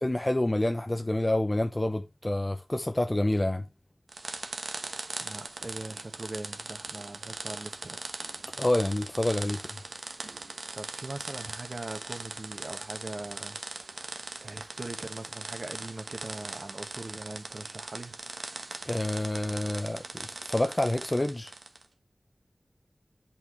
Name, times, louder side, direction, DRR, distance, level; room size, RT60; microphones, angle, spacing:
voice 1, 0.0-3.6 8.6-9.6 18.9-21.5, left 1 dB, 25° left, 0.8 m, -28 dB
sound 1, 4.1-21.9, right 3 dB, 80° right, 1.2 m, -40 dB
voice 2, 5.2-8.0 10.7-13.6 13.9-14.1 14.4-18.1, right 2 dB, 55° right, 1.5 m, -41 dB
8.3 x 6.0 x 3.2 m
wide cardioid pair, 55°, 0 cm